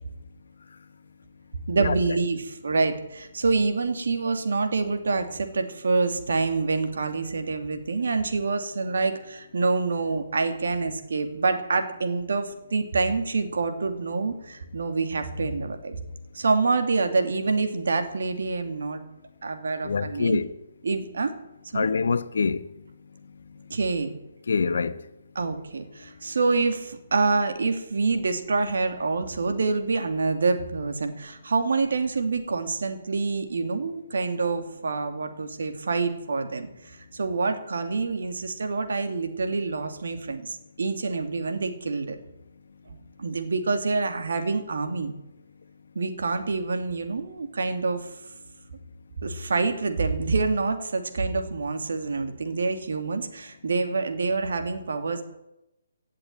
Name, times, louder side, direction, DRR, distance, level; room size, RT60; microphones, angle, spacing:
voice 1, 1.7-16.0 16.3-19.0 19.4-20.4 20.8-21.3 21.7-21.9 23.7-24.1 25.3-36.7 37.1-42.2 43.2-45.2 45.9-48.1 49.2-55.2, right 4 dB, 70° right, 2.5 m, -26 dB
voice 2, 19.8-20.5 21.7-22.7 24.5-25.0, left 5 dB, 70° left, 1.0 m, -25 dB
17.0 x 7.5 x 9.4 m
figure-of-eight pair, 145°, 0 cm